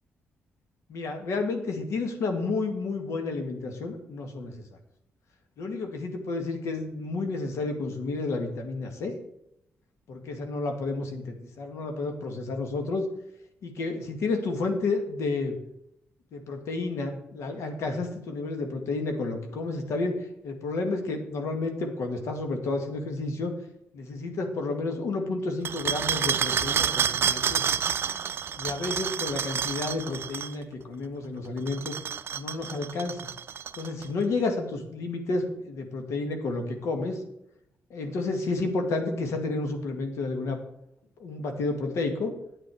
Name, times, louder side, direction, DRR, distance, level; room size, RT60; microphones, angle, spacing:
voice 1, 0.9-4.5 5.6-9.1 10.1-13.0 13.6-15.5 16.3-20.2 20.4-23.5 23.9-27.6 28.6-31.9 32.3-33.3 33.8-37.2 37.9-40.6 41.2-42.3, left 3 dB, 80° left, 5 dB, 1.9 m, -31 dB
sound 1, 25.6-30.5 31.6-34.0, right 8 dB, 55° right, 0.5 m, -29 dB
9.4 x 8.9 x 4.9 m, 0.79 s
cardioid pair, 100°, 5 cm